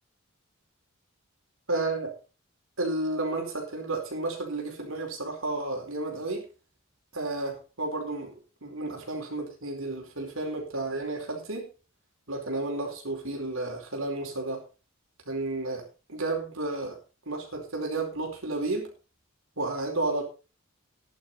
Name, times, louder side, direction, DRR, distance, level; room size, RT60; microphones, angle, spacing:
voice 1, 1.7-2.1 2.8-6.4 7.1-11.7 12.3-14.6 15.3-15.8 16.1-17.0 17.3-18.9 19.6-20.2, right 2 dB, 80° right, 1 dB, 4.6 m, -32 dB
14.5 x 11.0 x 4.2 m, 0.33 s
head